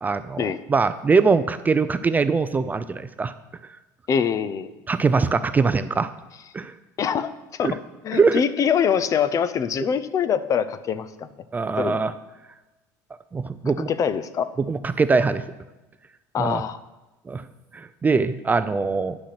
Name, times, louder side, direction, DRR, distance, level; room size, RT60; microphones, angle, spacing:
voice 1, 0.0-3.3 4.9-6.1 6.5-6.7 7.6-7.7 8.1-8.4 11.5-12.1 13.3-13.9 14.7-15.4 16.4-16.6 17.3-17.4 17.7-19.2, right 4 dB, 20° right, 12 dB, 0.4 m, -22 dB
voice 2, 4.1-4.8 7.0-7.8 8.0-11.3 11.8-12.0 13.8-14.5 16.3-16.8, left 7 dB, 40° left, 13 dB, 0.6 m, -24 dB
9.8 x 6.3 x 6.0 m, 1.1 s
supercardioid pair, 105°, 9 cm